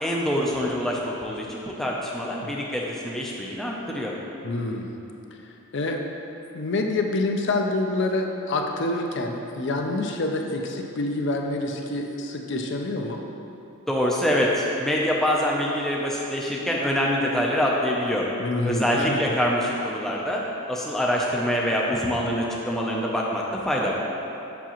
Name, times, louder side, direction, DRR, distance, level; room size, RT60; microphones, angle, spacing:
voice 1, 0.0-4.1 13.9-18.3 18.6-24.0, equal, ahead, -3 dB, 0.4 m, -25 dB
voice 2, 4.4-4.9 5.7-6.0 6.5-13.2 18.4-19.0, left 2 dB, 55° left, 2 dB, 0.5 m, -27 dB
7.1 x 5.9 x 3.0 m, 2.9 s
head